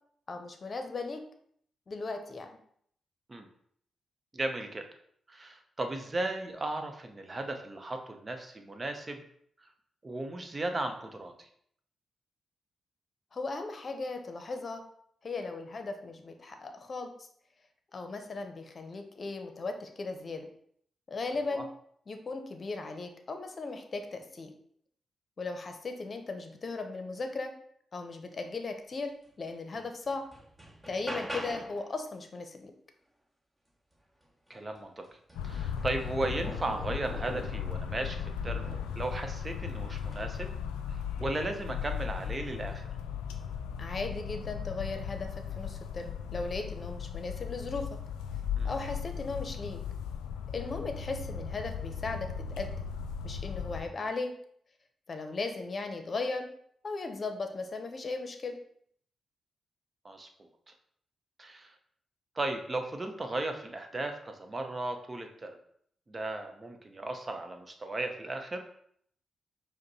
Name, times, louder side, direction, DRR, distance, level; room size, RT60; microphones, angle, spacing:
voice 1, 0.3-1.2 1.9-2.5 13.3-14.8 15.2-17.3 17.9-20.5 21.1-21.7 22.1-24.5 25.4-27.5 27.9-29.1 29.4-30.2 30.9-32.7 43.8-48.0 48.6-49.8 50.5-52.8 53.2-54.3 55.1-56.5 56.8-58.6, left 3 dB, 50° left, 6 dB, 0.7 m, -37 dB
voice 2, 4.3-4.8 5.3-9.2 10.0-11.5 21.5-21.6 34.5-35.0 35.4-40.5 40.9-42.9 48.6-48.7 60.0-60.3 61.4-61.7 62.4-65.6 66.1-68.6, right 2 dB, 35° right, 5 dB, 0.8 m, -36 dB
sound 1, 29.5-29.6 30.0-31.9 34.2-34.3 34.8-37.7 38.4-39.0 40.0-40.3, equal, 15° right, 1.3 m, -43 dB
sound 2, 35.3-53.8, left 7 dB, 90° left, 0.4 m, -37 dB
5.0 x 2.2 x 4.1 m, 0.65 s
hypercardioid pair, 40°, 0 cm